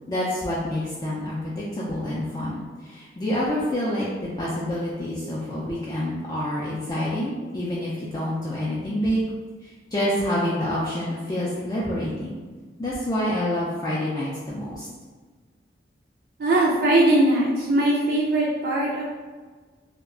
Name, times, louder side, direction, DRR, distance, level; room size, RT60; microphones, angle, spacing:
voice 1, 0.1-4.1 4.4-9.3 9.6-12.4 12.8-14.9, left 1 dB, 20° left, -7 dB, 0.3 m, -27 dB
voice 2, 16.4-19.0, right 1 dB, 55° right, -5 dB, 0.3 m, -20 dB
2.3 x 2.1 x 3.6 m, 1.4 s
head